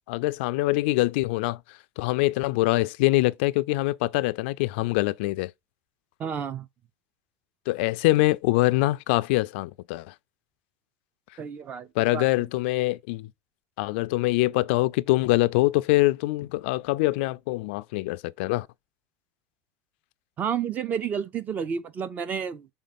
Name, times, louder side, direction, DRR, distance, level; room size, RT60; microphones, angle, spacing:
voice 1, 0.1-1.6 2.0-5.5 7.7-10.1 12.0-13.3 13.8-18.7, left 19 dB, 75° left, 0.4 m, -24 dB
voice 2, 6.2-6.7 11.4-12.5 20.4-22.7, right 7 dB, 25° right, 0.6 m, -31 dB
6.3 x 3.7 x 4.1 m
supercardioid pair, 150°, 6 cm